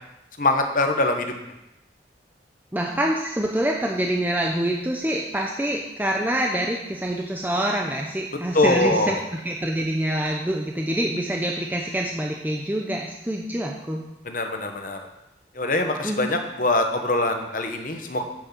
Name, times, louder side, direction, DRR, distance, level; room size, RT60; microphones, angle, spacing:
voice 1, 0.4-1.3 8.5-9.2 14.2-15.0 15.5-18.2, left 2 dB, 50° left, 5 dB, 1.2 m, -23 dB
voice 2, 2.7-14.0 16.0-16.3, right 1 dB, 10° right, 0 dB, 0.7 m, -26 dB
9.0 x 6.5 x 7.4 m, 0.92 s
head